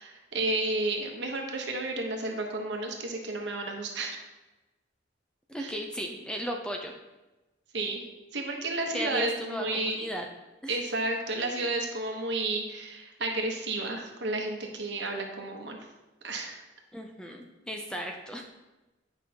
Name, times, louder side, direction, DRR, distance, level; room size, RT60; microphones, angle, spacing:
voice 1, 0.0-4.3 5.6-5.7 7.7-8.1 8.3-10.1 10.7-15.8 16.2-16.6, right 2 dB, 65° right, 2 dB, 1.1 m, -32 dB
voice 2, 5.5-6.9 8.9-10.3 10.6-10.9 16.9-18.4, equal, 5° left, 2 dB, 0.5 m, -35 dB
9.8 x 5.3 x 2.8 m, 1.1 s
head